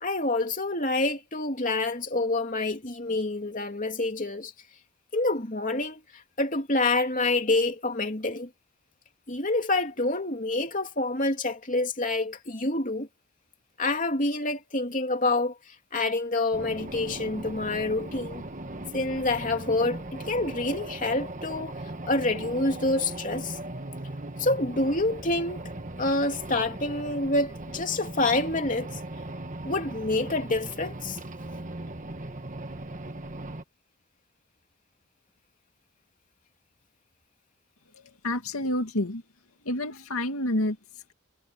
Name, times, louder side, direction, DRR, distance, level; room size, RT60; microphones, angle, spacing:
voice 1, 0.0-4.5 5.1-6.0 6.4-8.5 9.3-13.1 13.8-15.5 15.9-18.4 18.9-21.7 22.1-23.6 24.4-25.6 26.0-28.9 29.6-31.2, left 2 dB, 35° left, 3.1 m, -27 dB
sound 1, 16.5-33.6, right 2 dB, 35° right, 1.5 m, -38 dB
voice 2, 37.9-39.2 39.6-41.1, left 1 dB, 80° left, 2.4 m, -29 dB
head